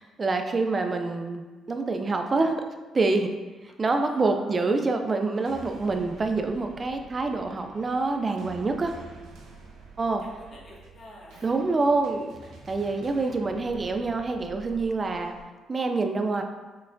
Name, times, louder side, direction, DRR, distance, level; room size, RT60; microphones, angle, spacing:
voice 1, 0.0-2.6 2.9-3.3 3.8-8.9 10.0-10.2 11.4-15.3 15.7-16.4, right 3 dB, 35° right, 5 dB, 0.3 m, -26 dB
voice 2, 3.8-4.5 10.0-11.5, left 1 dB, 45° left, -5 dB, 1.4 m, -49 dB
sound 1, 5.2-15.4, right 3 dB, 80° right, 0.7 m, -48 dB
5.7 x 3.2 x 2.5 m, 1.3 s
cardioid pair, 90°, 0 cm